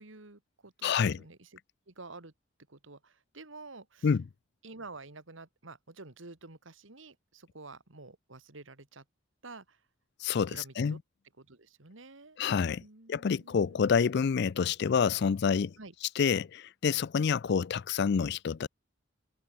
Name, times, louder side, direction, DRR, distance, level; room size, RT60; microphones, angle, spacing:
voice 1, 0.0-1.6 1.9-2.3 2.7-4.2 4.6-9.1 9.4-9.8 10.5-11.0 11.4-12.4 12.8-13.9 15.8-15.9, right 3 dB, 70° right, 2.1 m, -50 dB
voice 2, 0.8-1.2 4.0-4.2 10.2-11.0 12.4-12.8 13.1-15.7 16.2-18.7, left 6 dB, 55° left, 0.4 m, -28 dB
head